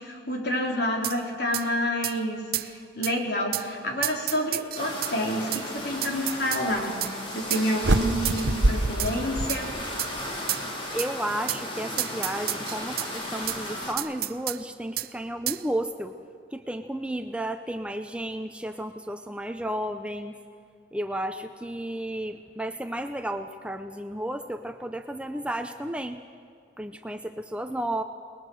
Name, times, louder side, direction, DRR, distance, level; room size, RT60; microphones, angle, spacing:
voice 1, 0.0-9.7, equal, 60° left, 0 dB, 4.1 m, -29 dB
sound 1, 1.0-1.2 1.5-1.7 2.0-2.2 2.5-2.7 3.0-3.1 3.5-3.7 4.0-5.1 5.5-5.6 6.0-6.6 7.0-7.1 7.5-7.7 8.2-8.5 9.0-9.1 9.5-9.6 10.0-10.1 10.5-10.7 11.0-11.1 11.5-11.6 12.0-13.1 13.5-13.6 14.0-14.6 15.0-15.1 15.5-15.6, right 15 dB, 55° right, 0.6 m, -30 dB
sound 2, 4.8-13.9, left 1 dB, 30° left, 3.4 m, -35 dB
sound 3, 7.8-10.2, right 1 dB, 80° right, 1.0 m, -25 dB
voice 2, 10.9-16.1 16.5-20.3 20.9-26.2 26.8-28.0, right 1 dB, 5° right, 7 dB, 0.6 m, -33 dB
29.0 x 20.5 x 6.4 m, 2.3 s
head